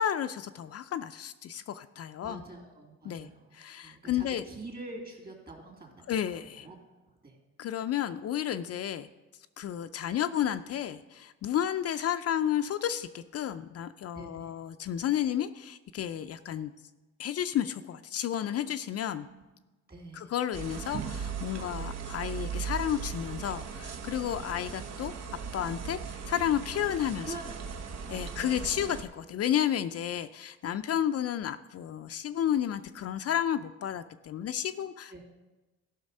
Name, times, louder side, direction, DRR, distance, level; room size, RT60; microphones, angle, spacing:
voice 1, 0.0-2.4 3.1-3.3 3.5-4.4 6.1-6.7 7.6-9.1 9.6-16.7 17.2-19.3 20.2-25.1 25.5-27.3 28.1-35.2, left 10 dB, 55° left, 9 dB, 0.4 m, -32 dB
voice 2, 2.2-6.2 6.5-6.8 7.0-7.4 14.1-14.5 19.1-19.4 19.9-20.3 27.2-28.8 29.1-29.3 35.1-35.2, right 2 dB, 30° right, 1 dB, 2.9 m, -46 dB
sound 1, 20.5-29.0, right 6 dB, 60° right, 0.9 m, -38 dB
13.0 x 5.8 x 5.4 m, 1.1 s
cardioid pair, 90°, 30 cm